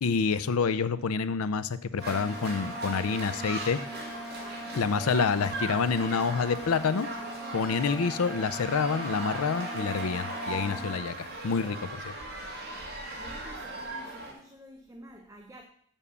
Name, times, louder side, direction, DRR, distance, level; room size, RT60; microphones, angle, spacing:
voice 1, 0.0-3.8 4.7-7.1 7.5-12.1, left 5 dB, 90° left, 14 dB, 0.5 m, -28 dB
sound 1, 2.0-11.0, equal, 30° left, 2.2 m, -42 dB
sound 2, 2.0-14.3, right 2 dB, 45° right, 1.9 m, -38 dB
voice 2, 13.2-15.7, right 1 dB, 15° right, 4 dB, 0.5 m, -49 dB
7.2 x 5.6 x 6.8 m, 0.66 s
head